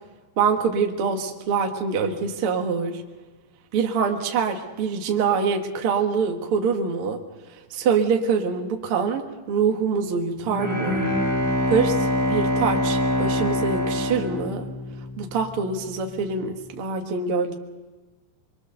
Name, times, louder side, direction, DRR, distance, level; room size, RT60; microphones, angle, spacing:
voice 1, 0.4-3.0 3.7-7.2 7.7-11.1 11.7-12.0 12.3-14.7 15.2-17.5, right 5 dB, 75° right, 3 dB, 1.2 m, -24 dB
Bowed string instrument, 10.4-15.3, left 1 dB, 5° left, 2.7 m, -24 dB
24.5 x 23.0 x 6.7 m, 1.2 s
omnidirectional pair, 5.0 m